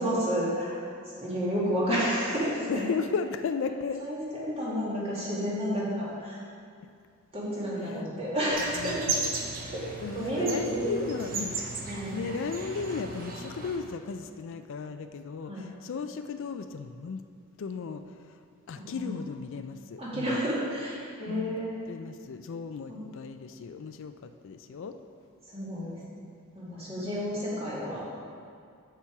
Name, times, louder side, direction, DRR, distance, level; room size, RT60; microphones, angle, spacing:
voice 1, 0.0-2.8 4.0-6.4 7.3-9.0 9.6-9.8 10.1-10.9 11.9-12.2 15.5-15.6 18.8-19.3 20.0-21.8 22.9-23.1 25.5-26.0 26.5-28.0, equal, 30° right, -7 dB, 2.2 m, -31 dB
voice 2, 2.7-4.1 7.8-8.0 8.8-9.3 10.0-11.6 12.1-17.2 17.6-18.4 18.7-20.3 21.3-21.6 21.9-25.0, left 5 dB, 65° left, 9 dB, 0.4 m, -35 dB
sound 1, 8.5-13.8, right 4 dB, 45° right, 0.9 m, -35 dB
7.3 x 6.8 x 4.7 m, 2.2 s
head